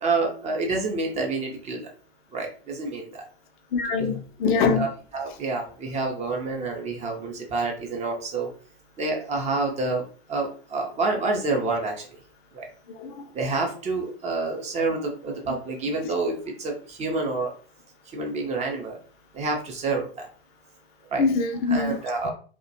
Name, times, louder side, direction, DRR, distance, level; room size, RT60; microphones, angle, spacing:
voice 1, 0.0-1.8 2.3-3.2 4.8-8.5 9.0-10.0 10.3-11.9 12.6-12.7 13.3-17.5 18.1-18.9 19.3-20.3 21.1-21.2 21.7-22.3, right 3 dB, 20° right, 1 dB, 0.5 m, -28 dB
voice 2, 3.7-4.9 13.0-13.1 21.2-22.0 22.2-22.3, left 4 dB, 50° left, 6 dB, 0.4 m, -23 dB
2.3 x 2.1 x 2.6 m, 0.42 s
hypercardioid pair, 100°, 31 cm